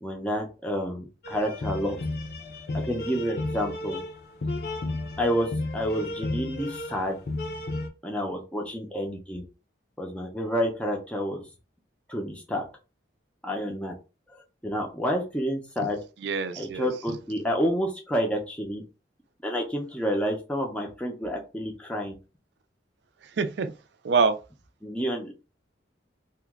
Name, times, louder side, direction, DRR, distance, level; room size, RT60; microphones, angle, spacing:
voice 1, 0.0-2.0 2.9-4.0 5.2-7.2 8.0-9.4 10.0-11.4 12.1-12.6 13.4-13.9 14.3-16.0 16.6-18.8 19.4-22.2 24.8-25.3, equal, 5° left, 0.5 m, -29 dB
sound 1, 1.2-7.9, left 2 dB, 55° left, 0.6 m, -33 dB
voice 2, 16.2-16.9 23.4-23.7 24.0-24.4, right 5 dB, 65° right, 0.4 m, -25 dB
2.9 x 2.2 x 3.5 m
head